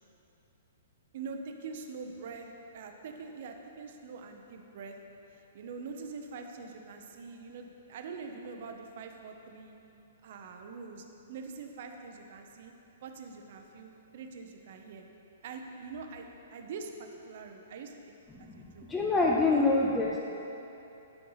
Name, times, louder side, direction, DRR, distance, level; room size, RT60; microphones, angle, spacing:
voice 1, 1.1-2.5 2.7-5.0 5.3-9.8 10.2-12.7 13.0-15.1 15.4-17.9 18.4-18.9 19.5-20.0, right 4 dB, 40° right, 4 dB, 0.7 m, -44 dB
voice 2, 18.3-20.2, left 3 dB, 5° left, -2 dB, 0.4 m, -26 dB
11.5 x 4.6 x 5.6 m, 3.0 s
hypercardioid pair, 180°, 0 cm